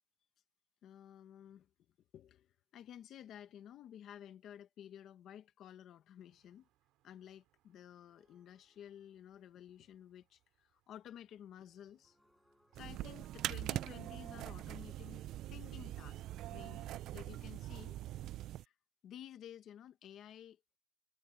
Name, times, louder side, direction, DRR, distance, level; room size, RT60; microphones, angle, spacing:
voice 1, 0.8-1.7 2.1-6.7 7.0-12.2 12.7-15.2 15.5-16.2 16.5-18.0 18.6-18.7 19.0-20.6, left 10 dB, 55° left, 0.9 m, -53 dB
sound 1, 6.2-15.7, right 15 dB, 85° right, 5.9 m, -76 dB
sound 2, 8.1-9.4 11.7-17.0, left 1 dB, 5° left, 6.0 m, -73 dB
sound 3, 12.7-18.6, right 14 dB, 65° right, 0.3 m, -43 dB
cardioid pair, 165°, 0 cm